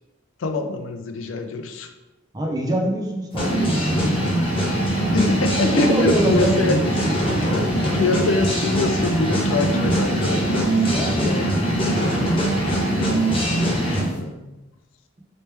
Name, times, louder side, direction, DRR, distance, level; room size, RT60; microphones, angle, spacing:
voice 1, 0.4-1.9 5.1-7.1 7.4-11.4 12.0-12.2 13.4-13.5 14.1-14.5, left 3 dB, 75° left, 6 dB, 0.4 m, -25 dB
voice 2, 2.3-5.1 5.6-7.5 10.8-11.3 11.9-12.0 13.0-13.3, right 1 dB, 20° right, 1 dB, 0.4 m, -26 dB
sound 1, 3.3-14.1, right 1 dB, 25° left, 0.7 m, -22 dB
3.1 x 3.1 x 3.2 m, 1.0 s
head